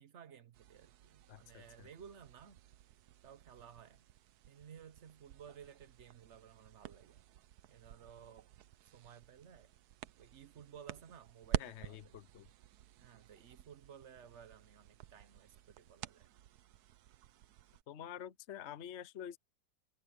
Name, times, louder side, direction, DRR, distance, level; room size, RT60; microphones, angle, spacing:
voice 1, 0.0-2.6 3.2-4.1 4.5-7.2 7.7-8.5 8.9-9.7 10.2-12.2 13.0-16.3, right 8 dB, 45° right, 1.1 m, -56 dB
sound 1, 0.5-17.8, right 13 dB, 70° right, 1.1 m, -49 dB
voice 2, 1.3-1.9 11.5-12.5 17.9-19.4, left 10 dB, 55° left, 0.8 m, -48 dB
omnidirectional pair, 1.9 m